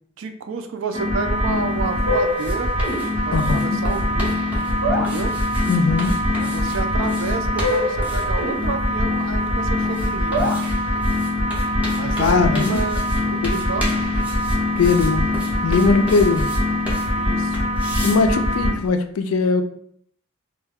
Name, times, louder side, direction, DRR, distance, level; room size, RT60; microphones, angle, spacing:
voice 1, 0.2-2.7 3.2-4.3 4.8-5.3 6.4-10.5 11.9-13.9 17.2-17.7, right 5 dB, 60° right, 7 dB, 0.4 m, -30 dB
sound 1, 0.9-18.7, left 1 dB, 80° right, 1.0 m, -22 dB
sound 2, 1.2-18.9, equal, 5° right, 0.5 m, -35 dB
voice 2, 5.7-6.2 12.2-12.8 13.4-13.5 14.8-15.3 15.6-16.5 18.0-19.6, left 4 dB, 80° left, 8 dB, 0.3 m, -19 dB
2.3 x 2.2 x 3.4 m, 0.64 s
head